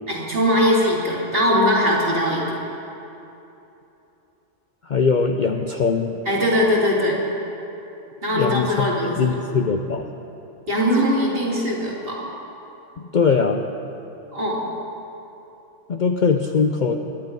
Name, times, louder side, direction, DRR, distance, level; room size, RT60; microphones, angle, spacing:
voice 1, 0.1-2.4 6.3-7.2 8.2-9.4 10.7-12.2 14.3-14.6, equal, 45° right, -5 dB, 3.0 m, -20 dB
voice 2, 4.9-6.2 8.3-8.9 9.2-10.1 13.0-13.6 15.9-17.0, left 5 dB, 50° left, 4 dB, 0.6 m, -21 dB
22.0 x 10.5 x 5.3 m, 2.9 s
omnidirectional pair, 1.3 m